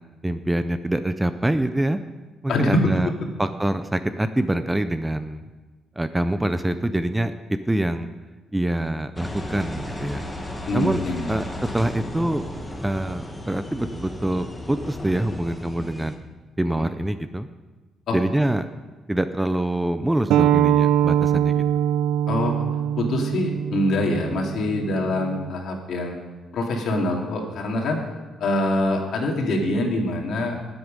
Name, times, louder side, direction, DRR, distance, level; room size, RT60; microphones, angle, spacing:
voice 1, 0.2-2.0 2.4-3.1 3.4-5.4 6.0-7.3 7.7-8.1 8.5-10.2 10.7-11.0 11.3-11.5 11.7-12.4 12.8-16.2 16.6-17.5 18.1-18.7 19.1-21.6, right 1 dB, 10° right, 10 dB, 0.4 m, -25 dB
voice 2, 2.5-3.1 10.7-11.4 16.7-16.8 18.1-18.2 22.3-22.6 23.0-26.2 26.5-28.0 28.4-30.6, left 1 dB, 60° left, 1 dB, 2.4 m, -24 dB
Engine, 9.2-16.2, left 1 dB, 10° left, 1.3 m, -34 dB
sound 1, 20.3-25.5, right 10 dB, 85° right, 0.3 m, -22 dB
19.5 x 7.9 x 5.2 m, 1.2 s
cardioid pair, 145°, 0 cm